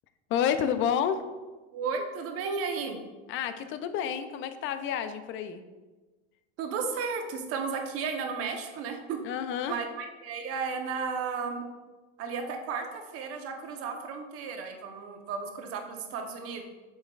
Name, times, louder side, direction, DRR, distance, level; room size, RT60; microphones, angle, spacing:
voice 1, 0.3-1.2 3.3-5.6 9.2-9.7, left 8 dB, 40° left, 10 dB, 0.5 m, -29 dB
voice 2, 1.7-3.0 6.6-9.2 9.7-11.6 12.2-16.6, right 5 dB, 45° right, 4 dB, 1.0 m, -34 dB
7.3 x 5.3 x 2.4 m, 1.2 s
supercardioid pair, 120°, 32 cm